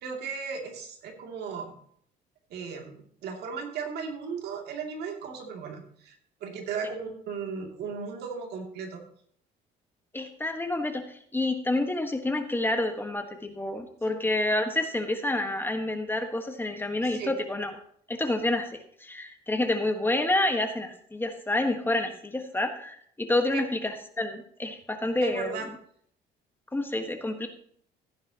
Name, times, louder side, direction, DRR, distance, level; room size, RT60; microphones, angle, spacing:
voice 1, 0.0-1.8 2.5-6.2 6.4-9.0 14.1-14.2 17.1-17.3 23.5-23.6 25.2-25.7, right 5 dB, 75° right, 2 dB, 2.7 m, -36 dB
voice 2, 10.1-17.7 18.1-18.7 19.0-25.6 26.7-27.5, left 2 dB, 10° left, 5 dB, 1.5 m, -28 dB
15.5 x 9.7 x 3.0 m, 0.63 s
cardioid pair, 110°, 17 cm